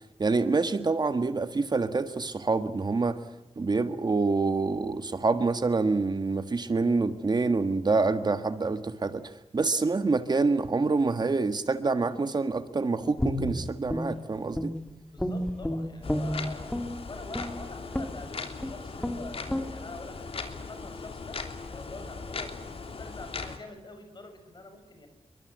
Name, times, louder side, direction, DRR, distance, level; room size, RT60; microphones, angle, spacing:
voice 1, 0.2-3.2 3.6-9.2 9.5-14.7, right 3 dB, 40° right, 10 dB, 1.7 m, -26 dB
Guitar, 13.2-14.9 15.2-16.9 17.3-17.5 17.9-18.2 18.6-18.7 19.0-19.2 19.5-19.7, left 1 dB, 10° left, 2.5 m, -30 dB
voice 2, 15.1-16.7 17.1-21.4 21.7-25.1, left 2 dB, 45° left, 6 dB, 6.9 m, -45 dB
sound 1, 16.0-23.6, left 4 dB, 60° left, 3.1 m, -39 dB
29.5 x 23.5 x 8.2 m, 0.94 s
wide cardioid pair, 140°, 11 cm